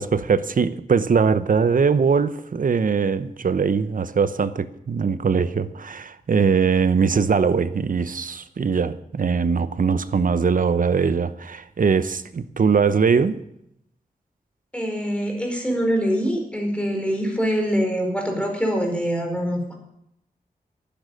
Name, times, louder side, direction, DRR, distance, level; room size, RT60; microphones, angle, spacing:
voice 1, 0.0-13.4, right 5 dB, 65° right, 0.9 m, -21 dB
voice 2, 14.7-19.7, equal, 10° left, 4.7 m, -24 dB
12.0 x 10.5 x 9.8 m
wide cardioid pair, 105°, 15 cm